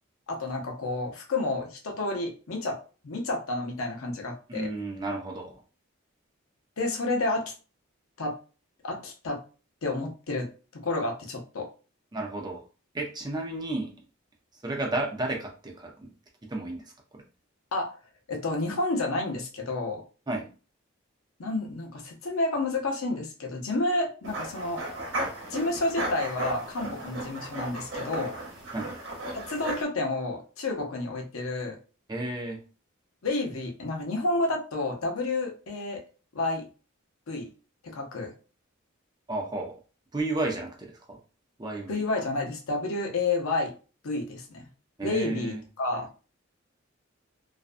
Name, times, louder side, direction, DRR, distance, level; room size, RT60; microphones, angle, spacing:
voice 1, 0.3-2.8 3.0-4.7 6.8-7.5 8.2-8.4 8.8-9.4 9.8-11.7 17.7-17.9 18.3-20.0 21.4-24.8 25.5-28.3 29.3-31.8 33.2-36.0 36.3-36.6 37.3-37.5 37.8-38.3 41.9-43.7 44.0-44.7 45.0-46.1, left 2 dB, 85° left, 1 dB, 0.7 m, -30 dB
voice 2, 4.5-5.6 12.1-12.6 12.9-13.9 14.6-16.1 16.4-16.8 17.1-17.2 20.3-20.5 27.0-27.1 28.7-28.9 32.1-32.6 39.3-39.8 40.1-41.2 41.6-42.0 45.0-45.6, right 2 dB, 20° right, 1 dB, 0.4 m, -32 dB
sound 1, 24.2-29.8, right 1 dB, 65° right, 0.9 m, -35 dB
2.5 x 2.2 x 2.4 m, 0.36 s
head